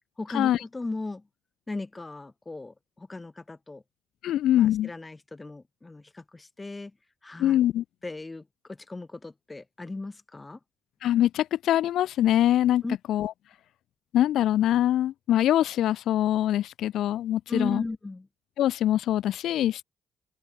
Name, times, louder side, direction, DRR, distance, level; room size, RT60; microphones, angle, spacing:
voice 1, 0.2-1.2 1.7-3.8 4.5-6.9 7.2-7.6 8.0-10.6 12.8-13.0 17.5-18.3, left 2 dB, 20° left, 7.9 m, -36 dB
voice 2, 4.2-4.9 7.4-7.8 11.0-12.8 13.1-13.3 14.1-17.8 18.6-19.8, left 12 dB, 80° left, 0.7 m, -23 dB
open air
cardioid pair, 90°, 0 cm